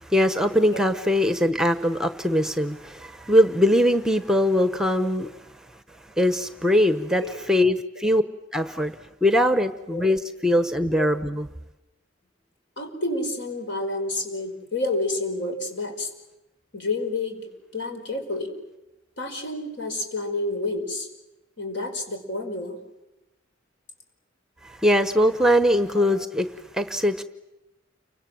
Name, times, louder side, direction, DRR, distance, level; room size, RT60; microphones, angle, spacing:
voice 1, 0.0-5.3 6.2-8.2 8.5-8.9 9.2-11.5 24.6-26.5 26.7-27.2, equal, 5° right, 9 dB, 0.9 m, -21 dB
voice 2, 12.8-16.1 16.7-18.5 19.2-21.1 21.6-22.8 25.9-26.1, left 2 dB, 65° left, 5 dB, 5.4 m, -29 dB
30.0 x 24.5 x 7.6 m, 0.99 s
head